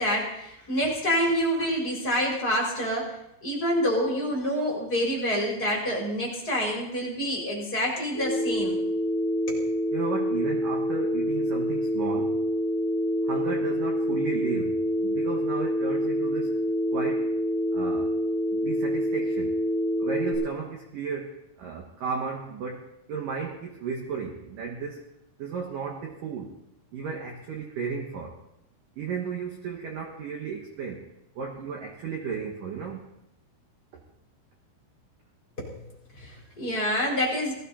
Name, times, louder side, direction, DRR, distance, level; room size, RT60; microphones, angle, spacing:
voice 1, 0.0-3.1 3.4-8.8 9.5-9.6 35.6-35.8 36.2-37.5, equal, 20° left, -4 dB, 4.0 m, -27 dB
Telephone, 8.1-20.3, equal, 35° right, 8.8 m, -27 dB
voice 2, 9.9-12.4 13.2-16.6 16.9-17.3 17.7-18.1 18.5-19.5 20.0-25.0 25.4-26.5 26.9-28.4 29.0-31.1 31.4-33.0 33.9-34.0, right 5 dB, 75° right, 1 dB, 2.0 m, -34 dB
18.5 x 15.0 x 4.2 m, 0.83 s
omnidirectional pair, 5.9 m